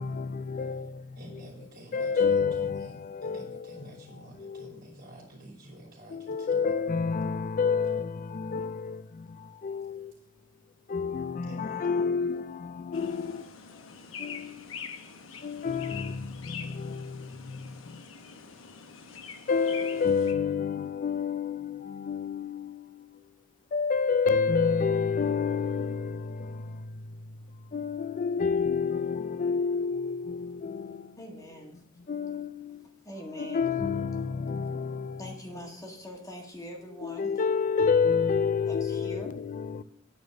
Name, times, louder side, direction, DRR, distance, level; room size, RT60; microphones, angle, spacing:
voice 1, 0.0-0.9 1.9-3.5 4.4-4.6 6.1-9.0 9.6-10.1 10.9-13.4 14.2-14.5 15.4-16.2 16.8-17.0 19.5-22.7 23.7-26.2 27.7-30.9 32.1-32.5 33.4-35.2 37.0-39.8, left 5 dB, 40° left, 0.4 m, -28 dB
voice 2, 0.5-6.7 9.8-10.1 11.4-12.1, right 1 dB, 50° right, 3.1 m, -50 dB
sound 1, 12.9-20.3, left 6 dB, 85° left, 0.9 m, -44 dB
voice 3, 31.2-31.8 33.0-33.8 35.2-37.3 38.7-39.3, equal, 15° left, 1.8 m, -43 dB
9.5 x 4.3 x 7.6 m
head